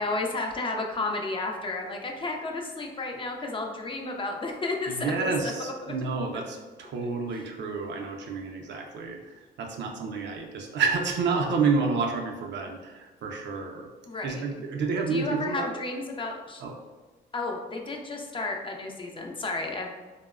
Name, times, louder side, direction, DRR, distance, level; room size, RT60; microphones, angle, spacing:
voice 1, 0.0-5.3 5.6-5.9 7.3-7.4 14.1-14.5 15.1-16.6 17.3-19.9, left 2 dB, 25° left, 1 dB, 0.3 m, -32 dB
voice 2, 4.9-13.9 14.2-15.7 16.6-16.7, right 4 dB, 65° right, 1 dB, 0.5 m, -29 dB
2.9 x 2.0 x 2.3 m, 1.3 s
cardioid pair, 90°, 20 cm